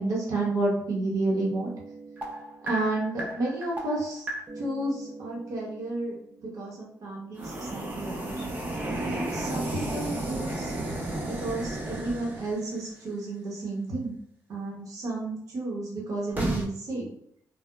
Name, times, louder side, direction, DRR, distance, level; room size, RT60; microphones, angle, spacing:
voice 1, 0.0-1.7 2.7-4.3 4.6-6.2 6.5-6.8 7.0-8.4 9.3-10.7 11.2-14.1 14.5-17.1, right 2 dB, 65° right, -2 dB, 0.7 m, -31 dB
sound 1, 1.3-6.1 7.3-12.8 16.3-16.6, right 2 dB, 25° right, 0.5 m, -34 dB
2.8 x 2.0 x 2.2 m, 0.69 s
cardioid pair, 130°, 7 cm